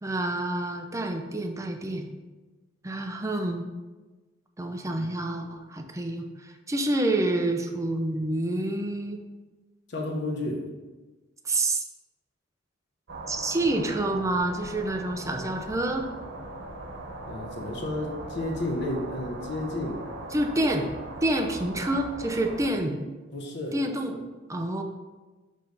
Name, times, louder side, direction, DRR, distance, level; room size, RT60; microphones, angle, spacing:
voice 1, 0.0-2.1 2.8-3.7 4.6-9.2 11.4-11.8 13.3-16.1 20.3-20.9 21.2-23.0 23.7-24.2 24.5-24.8, right 1 dB, 15° right, 4 dB, 0.5 m, -28 dB
voice 2, 9.9-10.6 17.3-20.0 23.3-23.7, left 1 dB, 60° left, 2 dB, 0.9 m, -31 dB
sound 1, 13.1-22.7, right 2 dB, 85° right, 1.0 m, -40 dB
6.3 x 3.3 x 5.3 m, 1.2 s
head